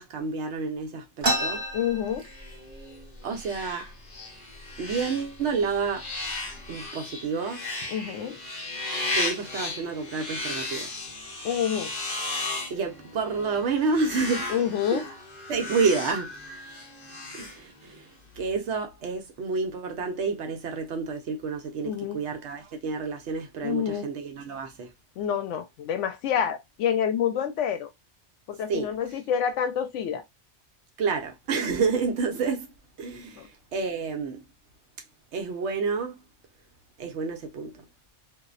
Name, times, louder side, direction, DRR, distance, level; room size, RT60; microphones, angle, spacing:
voice 1, 0.0-1.6 3.2-3.9 4.8-6.1 6.7-7.7 9.1-11.1 12.7-14.5 14.9-15.0 15.5-16.4 17.3-18.1 18.4-24.9 28.7-28.9 31.0-32.7 33.0-34.4 35.3-36.2 37.0-37.8, right 4 dB, 75° right, 0.9 m, -29 dB
sound 1, 1.2-2.8 3.2-3.3 3.5-4.1 4.7-4.9 5.6-5.8 6.2-6.7, right 1 dB, 50° right, 1.1 m, -29 dB
voice 2, 1.7-2.3 7.9-8.4 11.4-11.9 14.5-15.1 21.8-22.2 23.6-24.1 25.2-27.9 28.5-30.2 33.4-33.5, left 8 dB, 85° left, 0.9 m, -28 dB
sound 2, 2.2-18.1, left 2 dB, 45° left, 0.8 m, -36 dB
2.5 x 2.0 x 2.4 m
omnidirectional pair, 1.2 m